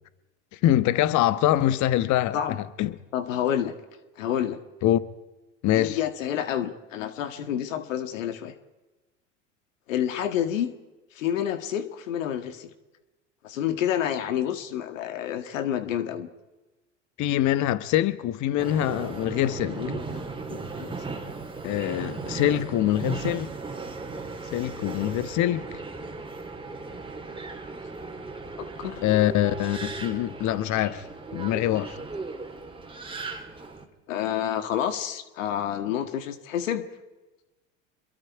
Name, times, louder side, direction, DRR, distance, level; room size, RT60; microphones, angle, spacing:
voice 1, 0.6-3.0 4.8-5.0 5.6-6.0 17.2-19.8 21.6-23.5 24.5-25.7 29.0-31.0 31.3-32.0, left 13 dB, 50° left, 1.2 m, -24 dB
voice 2, 3.1-3.7 4.2-4.6 5.7-8.6 9.9-10.7 11.1-12.7 13.4-16.3 19.8-20.9 28.6-29.0 34.1-36.8, left 10 dB, 80° left, 2.0 m, -29 dB
Subway metro underground, 18.6-33.8, right 3 dB, 15° right, 3.3 m, -36 dB
27.0 x 22.5 x 4.8 m
hypercardioid pair, 90°, 38 cm